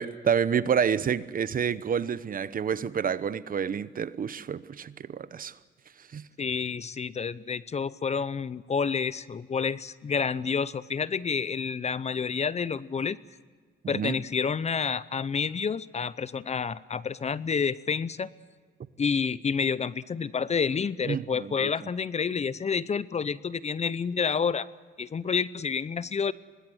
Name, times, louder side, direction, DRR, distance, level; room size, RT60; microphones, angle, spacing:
voice 1, 0.0-5.5 6.1-6.2 13.9-14.1 21.1-21.7, right 7 dB, 45° right, 0.9 m, -28 dB
voice 2, 6.4-13.2 13.9-18.3 19.0-24.7 25.0-26.3, left 6 dB, 35° left, 0.7 m, -29 dB
24.5 x 20.0 x 7.9 m
cardioid pair, 90°, 20 cm